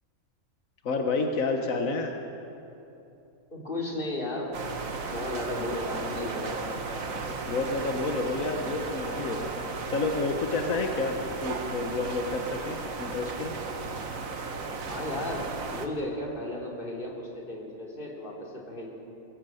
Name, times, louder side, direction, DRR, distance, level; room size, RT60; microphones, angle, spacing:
voice 1, 0.8-2.1 7.5-13.5, left 3 dB, 85° left, 3 dB, 1.6 m, -30 dB
voice 2, 3.5-4.5 5.1-6.7 14.9-18.9, left 1 dB, 40° left, -2 dB, 3.5 m, -34 dB
sound 1, 4.5-15.9, right 4 dB, 85° right, 1.8 m, -35 dB
22.5 x 16.0 x 7.8 m, 2.9 s
omnidirectional pair, 1.4 m